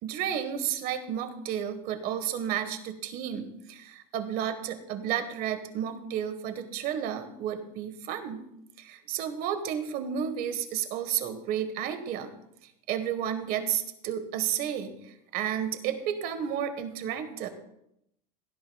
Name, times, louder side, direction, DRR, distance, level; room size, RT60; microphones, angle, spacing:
voice 1, 0.0-8.4 8.8-12.3 12.9-17.5, right 9 dB, 50° right, 9 dB, 1.4 m, -32 dB
17.0 x 11.5 x 2.3 m, 0.79 s
supercardioid pair, 130°, 19 cm